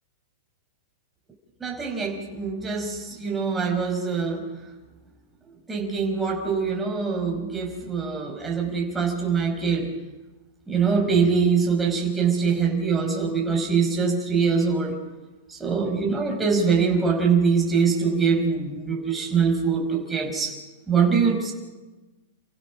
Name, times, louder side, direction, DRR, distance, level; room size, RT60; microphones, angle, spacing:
voice 1, 1.6-4.5 5.7-9.9 10.7-15.0 15.5-20.6 20.9-21.5, right 5 dB, 10° right, 0 dB, 5.6 m, -23 dB
30.0 x 15.5 x 6.3 m, 1.2 s
hypercardioid pair, 140°, 0 cm